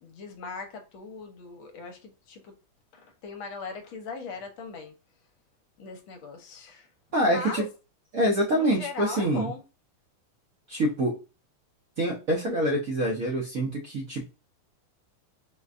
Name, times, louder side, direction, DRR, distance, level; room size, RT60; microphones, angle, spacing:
voice 1, 0.0-2.5 2.9-4.9 5.8-6.9 7.2-7.7 8.5-9.6, left 4 dB, 75° left, 1.5 m, -39 dB
voice 2, 7.1-7.7 8.1-9.5 10.7-11.1 12.0-14.3, right 1 dB, 60° right, 0.9 m, -26 dB
5.0 x 2.1 x 2.4 m
omnidirectional pair, 2.4 m